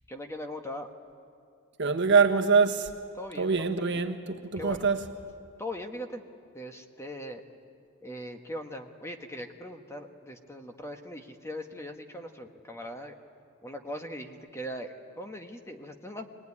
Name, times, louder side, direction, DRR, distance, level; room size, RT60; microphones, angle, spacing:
voice 1, 0.1-0.9 3.1-4.1 4.6-4.9 5.6-6.2 6.5-7.4 8.0-13.1 13.6-16.3, equal, 15° left, 1.3 m, -40 dB
voice 2, 1.8-2.9 3.4-5.1, right 5 dB, 55° right, 1.4 m, -24 dB
24.5 x 20.0 x 9.7 m
head